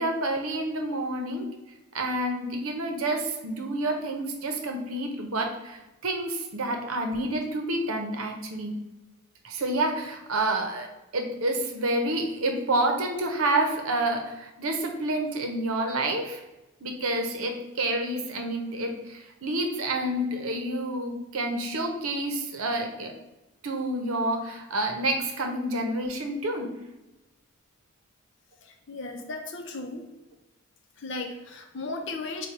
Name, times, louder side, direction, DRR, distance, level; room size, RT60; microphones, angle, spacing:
voice 1, 0.0-1.5 1.9-8.8 9.4-10.9 11.1-16.4 16.8-23.1 23.6-26.7, right 1 dB, 80° right, 4 dB, 0.7 m, -29 dB
voice 2, 28.7-30.0 31.0-32.5, left 3 dB, 55° left, 4 dB, 0.6 m, -36 dB
4.3 x 2.3 x 4.6 m, 1.0 s
head